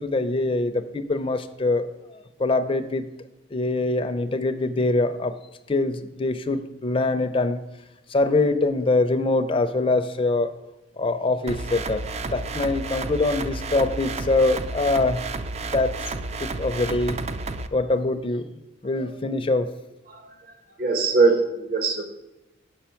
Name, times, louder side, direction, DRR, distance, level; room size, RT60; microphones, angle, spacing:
voice 1, 0.0-1.9 2.4-3.1 3.5-5.3 5.7-7.6 8.1-10.5 11.0-15.2 15.6-16.0 16.4-17.2 17.7-18.5 18.8-19.7, left 2 dB, 30° left, 8 dB, 0.4 m, -23 dB
sound 1, 11.5-17.7, right 3 dB, 35° right, 0.4 m, -31 dB
voice 2, 20.8-22.1, right 4 dB, 50° right, 6 dB, 1.0 m, -21 dB
6.8 x 5.5 x 5.7 m, 1.0 s
head